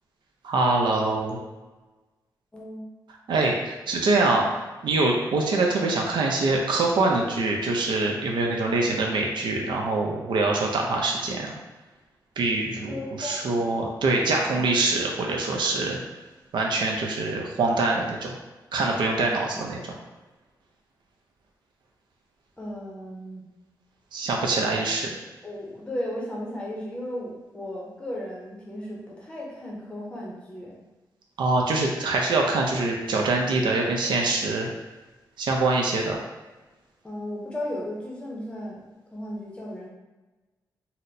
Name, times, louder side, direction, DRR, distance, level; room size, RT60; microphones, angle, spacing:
voice 1, 0.4-1.4 3.3-11.6 12.4-16.0 16.5-18.3 18.7-19.9 24.1-25.0 31.4-34.7 35.4-36.2, right 3 dB, 80° right, 0 dB, 0.5 m, -24 dB
voice 2, 2.5-2.9 12.7-13.7 14.5-14.6 22.6-23.4 24.6-24.7 25.4-30.8 37.0-38.8 39.1-39.9, left 1 dB, 15° left, -3 dB, 0.6 m, -35 dB
4.1 x 2.0 x 2.6 m, 1.2 s
wide cardioid pair, 155°, 8 cm